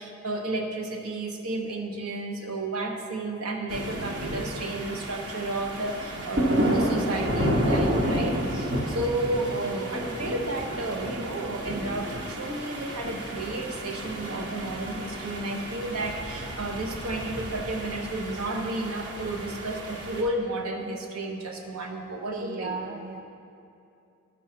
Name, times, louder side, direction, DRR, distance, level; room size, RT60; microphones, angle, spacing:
voice 1, 0.0-22.8, right 2 dB, 80° right, 2 dB, 1.1 m, -32 dB
sound 1, 3.7-20.2, equal, 55° right, 1.1 m, -31 dB
voice 2, 22.3-23.2, right 4 dB, 35° right, 4 dB, 0.3 m, -35 dB
11.0 x 6.2 x 5.8 m, 2.6 s
head